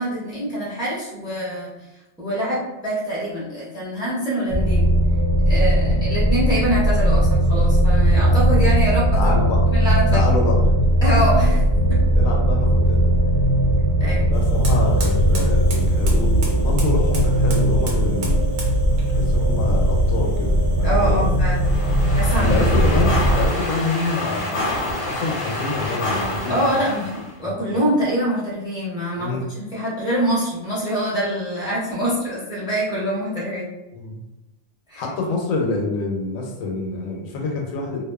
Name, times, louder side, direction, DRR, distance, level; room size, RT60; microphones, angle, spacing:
voice 1, 0.0-1.7 2.2-4.9 5.5-9.3 9.7-10.2 11.0-12.0 14.0-14.3 20.8-21.7 22.1-22.6 26.5-33.7 34.9-35.0, equal, 5° right, -8 dB, 0.7 m, -24 dB
sound 1, 4.5-23.5, right 1 dB, 55° right, 0.5 m, -18 dB
voice 2, 9.2-9.6 10.1-10.5 12.2-13.0 14.3-18.5 19.1-20.5 20.8-21.4 22.4-24.6 25.1-26.7 27.7-27.8 29.2-29.5 33.9-34.2 35.0-38.0, left 3 dB, 90° left, 0 dB, 1.0 m, -26 dB
Fire, 14.3-24.9, right 2 dB, 75° right, 1.0 m, -39 dB
sound 2, 21.6-27.3, left 1 dB, 60° left, 0.8 m, -27 dB
2.5 x 2.3 x 2.2 m, 0.95 s
omnidirectional pair, 1.4 m